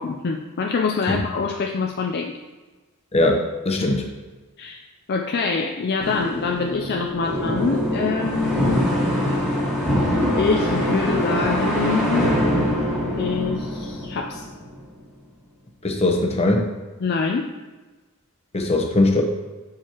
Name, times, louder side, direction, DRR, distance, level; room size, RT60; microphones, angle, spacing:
voice 1, 0.0-2.3 3.8-3.9 4.6-4.8 5.1-9.0 10.4-12.3 13.2-14.4 17.0-17.5, left 4 dB, 50° left, 2 dB, 0.4 m, -25 dB
voice 2, 3.1-4.0 15.8-16.7 18.5-19.2, left 2 dB, 30° left, 2 dB, 0.9 m, -20 dB
sound 1, 6.0-14.8, equal, 5° right, 1.6 m, -23 dB
7.2 x 6.4 x 2.9 m, 1.2 s
head